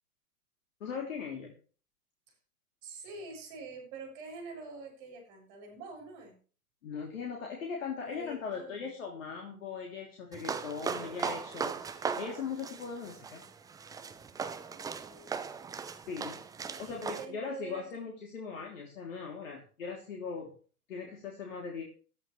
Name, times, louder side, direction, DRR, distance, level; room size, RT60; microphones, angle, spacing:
voice 1, 0.8-1.5 6.8-13.4 16.1-16.4 16.8-20.5 20.9-21.8, left 5 dB, 55° left, 0 dB, 3.2 m, -39 dB
voice 2, 2.8-6.4 8.0-8.9 14.7-15.6 16.7-17.9, right 3 dB, 40° right, 2 dB, 7.2 m, -46 dB
sound 1, 10.3-17.3, right 6 dB, 10° right, 0.7 m, -38 dB
18.5 x 13.0 x 3.2 m, 0.40 s
figure-of-eight pair, 110°, 46 cm